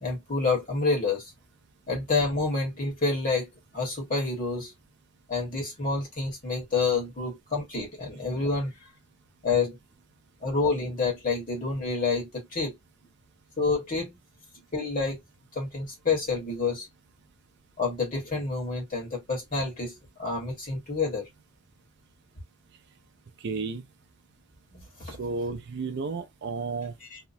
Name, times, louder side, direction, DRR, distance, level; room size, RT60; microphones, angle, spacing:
voice 1, 0.0-1.3 1.9-3.5 3.7-4.7 5.3-8.7 9.4-9.8 10.4-12.8 13.6-14.1 14.7-15.2 15.5-16.9 17.8-21.3 24.7-25.2 27.1-27.2, left 4 dB, 40° left, 1.3 m, -28 dB
voice 2, 23.4-23.9 25.1-27.0, right 4 dB, 55° right, 0.4 m, -32 dB
2.8 x 2.1 x 2.6 m
head